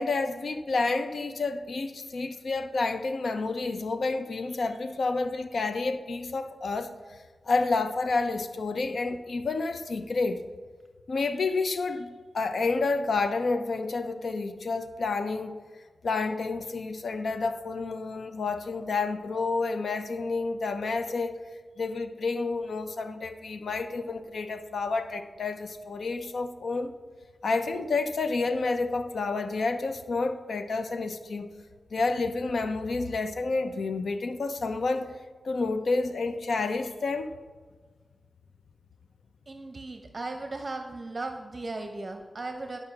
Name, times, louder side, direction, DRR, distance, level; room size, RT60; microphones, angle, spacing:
voice 1, 0.0-6.9 7.4-10.4 11.1-15.6 16.0-21.4 21.8-26.9 27.4-31.5 31.9-35.1 35.4-37.3, left 3 dB, 80° left, 9 dB, 0.7 m, -29 dB
voice 2, 39.5-42.8, right 2 dB, 45° right, 5 dB, 0.9 m, -37 dB
11.5 x 5.6 x 5.9 m, 1.4 s
cardioid pair, 60°, 0 cm